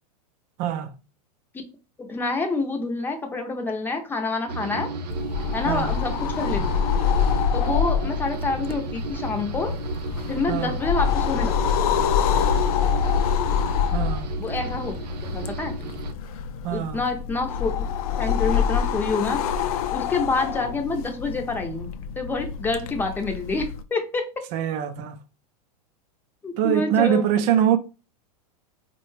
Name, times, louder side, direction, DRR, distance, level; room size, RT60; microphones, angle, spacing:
voice 1, 0.6-0.9 5.6-5.9 10.5-10.8 13.9-14.4 16.6-17.0 24.5-25.2 26.6-27.8, right 10 dB, 35° right, 0.5 m, -23 dB
voice 2, 2.0-4.9 5.5-6.6 7.5-9.8 10.3-11.5 14.4-14.9 15.3-15.8 16.7-17.7 18.2-19.4 19.9-21.9 22.2-24.4 26.4-27.2, left 3 dB, 10° left, 0.6 m, -27 dB
sound 1, 4.5-16.1, right 2 dB, 85° right, 0.6 m, -33 dB
sound 2, 5.1-23.8, left 7 dB, 60° left, 0.4 m, -26 dB
3.8 x 2.2 x 3.1 m
supercardioid pair, 140°, 21 cm